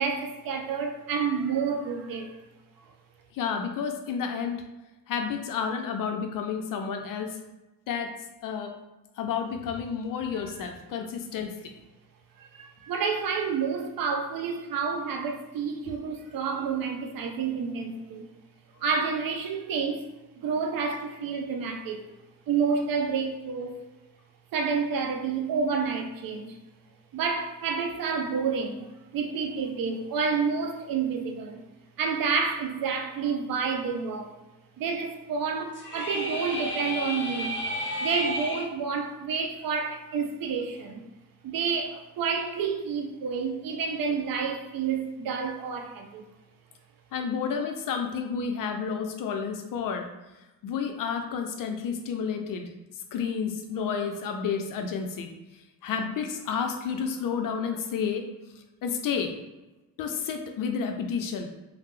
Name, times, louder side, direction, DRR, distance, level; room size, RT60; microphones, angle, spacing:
voice 1, 0.0-2.4 10.6-10.7 12.4-18.3 18.8-20.0 20.4-22.0 22.5-23.8 24.5-26.6 27.1-28.9 29.1-31.6 32.0-34.3 34.8-37.6 38.0-41.0 41.4-46.2, right 5 dB, 45° right, 0.5 m, -29 dB
voice 2, 3.3-4.6 5.1-7.4 7.9-8.1 8.4-8.7 9.2-11.6 47.1-50.1 50.6-52.7 53.1-55.3 55.8-58.3 58.6-59.3 60.0-61.5, left 6 dB, 45° left, 0.5 m, -30 dB
sound 1, 35.7-38.6, left 1 dB, 25° left, 0.9 m, -32 dB
3.1 x 2.0 x 3.1 m
hypercardioid pair, 45°, 48 cm